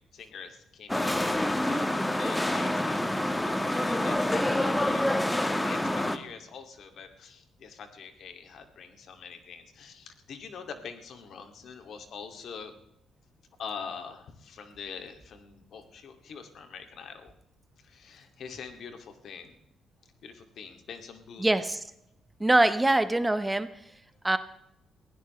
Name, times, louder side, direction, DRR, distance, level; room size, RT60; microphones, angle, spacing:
voice 1, 0.1-1.3 1.7-12.7 13.6-17.3 17.8-19.5 20.2-21.5, left 6 dB, 65° left, 6 dB, 2.5 m, -44 dB
sound 1, 0.9-6.2, left 1 dB, 10° left, 1.5 m, -27 dB
voice 2, 21.4-21.8 22.4-23.7 24.2-24.4, right 2 dB, 15° right, 11 dB, 1.1 m, -23 dB
22.0 x 16.0 x 3.3 m, 0.79 s
cardioid pair, 90°, 0 cm